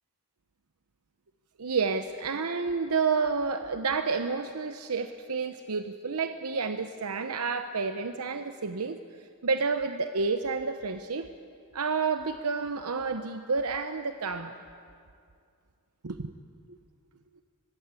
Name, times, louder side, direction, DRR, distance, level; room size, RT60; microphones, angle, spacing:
voice 1, 1.6-9.0 9.4-11.3 11.7-14.6 16.0-16.3, right 4 dB, 85° right, 8 dB, 0.9 m, -30 dB
24.5 x 21.0 x 8.4 m, 2.4 s
head